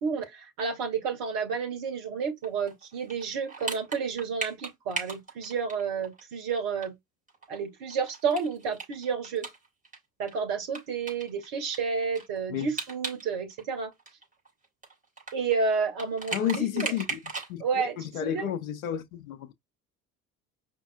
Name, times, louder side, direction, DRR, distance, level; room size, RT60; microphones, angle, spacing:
voice 1, 0.0-7.0 7.5-9.5 10.2-13.9 15.3-16.9 17.6-18.5, right 5 dB, 60° right, 1.8 m, -30 dB
sound 1, 2.4-6.2 6.5-6.6 6.8-6.9 7.3-10.0 10.3-10.4 10.7-13.2 13.5-17.5, right 4 dB, 20° right, 3.4 m, -37 dB
voice 2, 16.3-17.2 17.5-17.8 18.1-19.5, left 10 dB, 80° left, 0.8 m, -31 dB
5.1 x 4.6 x 2.2 m
figure-of-eight pair, 55°, 41 cm